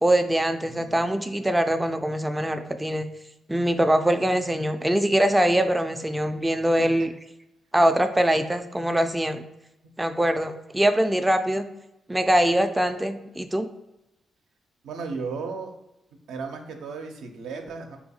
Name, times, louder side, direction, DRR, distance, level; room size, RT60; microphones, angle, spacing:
voice 1, 0.0-3.1 3.5-7.1 7.7-9.4 10.0-11.7 12.1-13.7, right 1 dB, 15° right, 6 dB, 0.4 m, -23 dB
voice 2, 0.6-1.0 6.8-6.9 14.8-15.7 16.3-18.0, right 4 dB, 80° right, 3 dB, 0.5 m, -35 dB
4.1 x 2.2 x 2.7 m, 0.92 s
hypercardioid pair, 45°, 0 cm